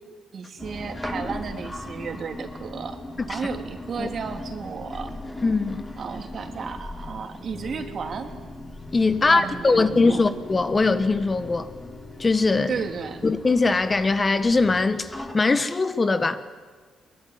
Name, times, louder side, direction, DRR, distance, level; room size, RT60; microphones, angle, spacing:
voice 1, 0.3-3.0 3.3-5.1 6.0-8.3 9.2-10.2 12.7-13.2, right 5 dB, 50° right, 5 dB, 3.1 m, -33 dB
sound 1, 0.6-15.3, left 1 dB, 10° left, 3.4 m, -39 dB
voice 2, 5.4-5.8 8.9-11.7 12.2-12.7 13.2-16.4, left 3 dB, 25° left, 10 dB, 1.4 m, -21 dB
sound 2, 7.5-14.8, left 3 dB, 75° left, 7.9 m, -44 dB
22.5 x 22.0 x 9.5 m, 1.5 s
cardioid pair, 90°, 0 cm